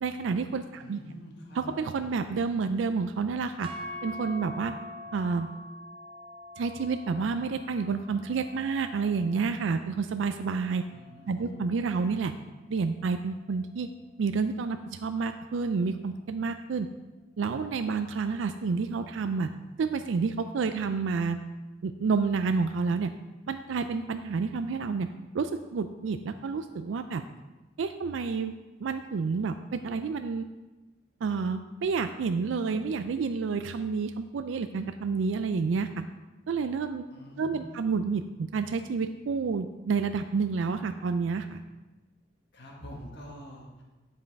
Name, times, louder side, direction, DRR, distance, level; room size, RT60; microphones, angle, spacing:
voice 1, 0.0-1.0 1.5-3.7 4.0-4.7 5.1-5.5 6.6-10.8 11.3-12.3 12.7-13.9 14.2-16.9 17.4-19.5 19.8-21.4 21.8-23.1 23.5-25.1 25.3-27.2 27.8-28.5 28.8-30.5 31.2-35.9 36.5-37.0 37.4-41.6, right 5 dB, 70° right, 9 dB, 0.4 m, -29 dB
voice 2, 0.7-1.6 10.9-11.6 12.0-12.1 37.1-38.0 42.5-43.8, equal, 60° left, -2 dB, 1.5 m, -46 dB
sound 1, 3.6-11.9, left 1 dB, 30° right, 0.7 m, -45 dB
10.0 x 5.3 x 4.6 m, 1.1 s
head